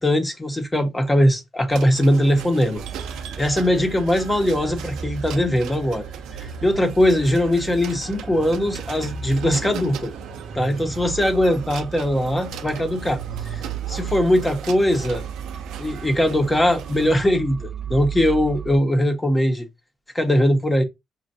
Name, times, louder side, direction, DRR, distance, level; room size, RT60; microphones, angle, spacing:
voice 1, 0.0-2.8 3.4-6.0 6.4-10.1 10.5-13.2 13.5-13.6 13.9-15.2 15.8-19.7 20.1-20.8, left 1 dB, 15° left, 1.0 m, -20 dB
sound 1, 1.7-17.1, right 8 dB, 85° right, 0.5 m, -38 dB
sound 2, 2.8-18.8, right 6 dB, 35° right, 0.4 m, -35 dB
5.4 x 2.5 x 2.5 m
cardioid pair, 90°, 0 cm